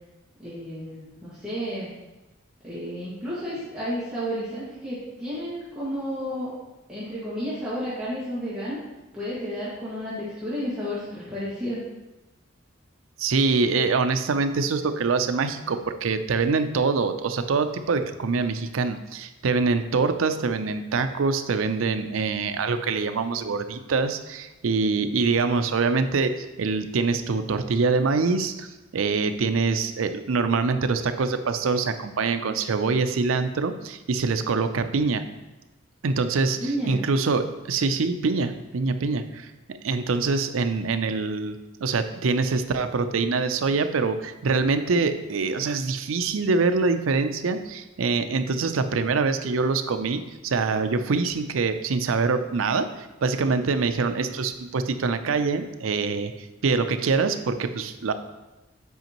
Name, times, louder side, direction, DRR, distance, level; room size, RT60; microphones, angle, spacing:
voice 1, 0.4-1.9 2.6-6.6 6.9-8.8 9.1-11.8 36.6-37.0, equal, 5° right, -12 dB, 1.7 m, -32 dB
voice 2, 13.2-35.2 36.0-58.1, right 4 dB, 85° right, 9 dB, 0.5 m, -25 dB
8.0 x 5.1 x 3.0 m, 1.0 s
head